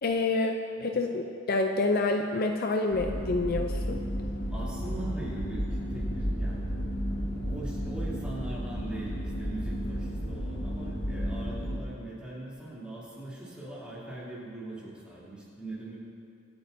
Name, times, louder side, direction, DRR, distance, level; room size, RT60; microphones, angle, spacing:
voice 1, 0.0-4.0, left 3 dB, 50° left, 4 dB, 0.5 m, -28 dB
sound 1, 2.9-11.8, equal, 70° left, 1.7 m, -32 dB
voice 2, 4.5-7.1 7.4-16.0, right 2 dB, 5° right, -8 dB, 3.1 m, -41 dB
24.5 x 8.7 x 2.7 m, 2.4 s
head